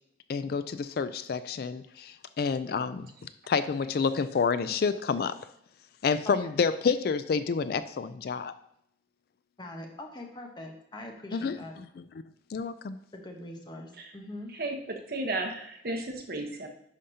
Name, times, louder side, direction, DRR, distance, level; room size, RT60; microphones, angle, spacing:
voice 1, 0.3-3.1 3.5-5.4 6.0-8.5 11.3-12.0 12.5-13.0, left 5 dB, 60° left, 13 dB, 0.3 m, -29 dB
voice 2, 9.6-11.7 13.1-14.5, left 1 dB, 25° left, 2 dB, 1.0 m, -43 dB
voice 3, 14.5-16.7, right 2 dB, 55° right, 3 dB, 1.0 m, -34 dB
11.0 x 5.1 x 2.8 m, 0.75 s
head